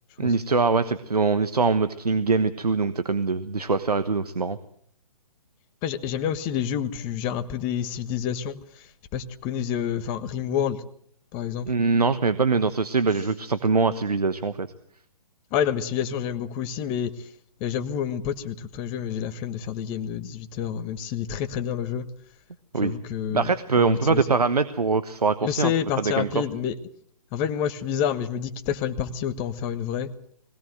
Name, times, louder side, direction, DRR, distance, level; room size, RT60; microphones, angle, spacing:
voice 1, 0.2-4.6 11.7-14.7 22.7-23.0 23.3-25.7 26.0-26.3, right 4 dB, 85° right, 12 dB, 1.2 m, -23 dB
voice 2, 5.8-10.8 11.3-11.7 15.5-17.3 17.6-22.1 22.8-24.3 25.4-26.7 27.3-30.1, left 9 dB, 25° left, 11 dB, 1.3 m, -28 dB
21.0 x 16.5 x 7.9 m, 0.65 s
figure-of-eight pair, 135°, 19 cm